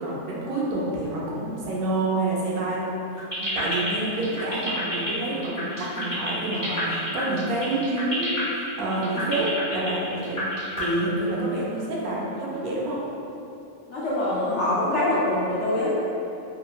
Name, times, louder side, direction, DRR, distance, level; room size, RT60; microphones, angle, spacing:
voice 1, 0.0-10.5 10.8-13.0, right 2 dB, 80° right, -5 dB, 1.1 m, -28 dB
sound 1, 3.2-10.8, left 1 dB, 15° left, 1.2 m, -30 dB
voice 2, 13.9-15.9, left 1 dB, 65° left, -7 dB, 0.8 m, -24 dB
2.9 x 2.5 x 2.3 m, 2.8 s
omnidirectional pair, 1.5 m